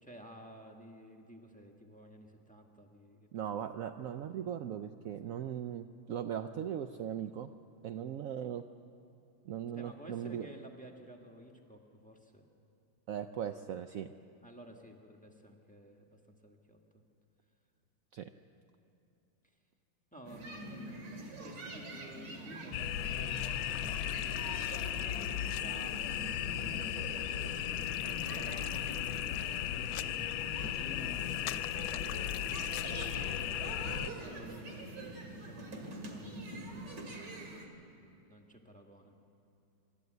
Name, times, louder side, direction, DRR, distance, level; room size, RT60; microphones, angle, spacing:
voice 1, 0.0-3.3 3.9-4.2 9.7-12.5 14.4-16.8 20.1-30.2 30.6-37.6 38.0-39.1, equal, 5° left, 2 dB, 1.3 m, -53 dB
voice 2, 3.3-7.5 7.8-8.6 9.5-10.5 13.1-14.1 18.1-18.3, right 9 dB, 80° right, 8 dB, 0.7 m, -39 dB
sound 1, 20.3-37.7, right 2 dB, 65° right, 2.6 m, -45 dB
sound 2, 22.7-34.1, left 11 dB, 85° left, 1.4 m, -36 dB
26.5 x 12.0 x 8.0 m, 2.7 s
omnidirectional pair, 2.1 m